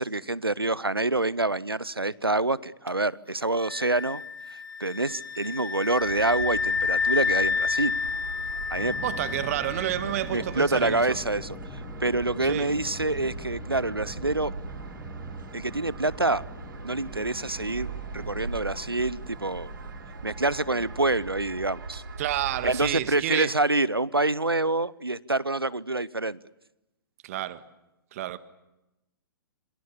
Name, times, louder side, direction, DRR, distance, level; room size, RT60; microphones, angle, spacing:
voice 1, 0.0-4.2 4.5-8.0 8.7-9.0 10.3-14.5 15.5-16.4 16.8-17.9 18.1-19.7 20.2-22.0 22.6-26.4, right 2 dB, 85° right, 0.9 m, -27 dB
sound 1, 3.6-10.4, left 5 dB, 60° left, 1.2 m, -30 dB
sound 2, 6.0-23.0, right 4 dB, 65° right, 3.2 m, -40 dB
sound 3, 8.8-21.6, left 5 dB, 10° left, 1.7 m, -46 dB
voice 2, 9.0-11.2 12.5-12.7 22.2-23.5 27.2-27.6 28.1-28.4, right 13 dB, 40° right, 1.6 m, -30 dB
27.0 x 26.5 x 7.0 m
figure-of-eight pair, 120°, 12 cm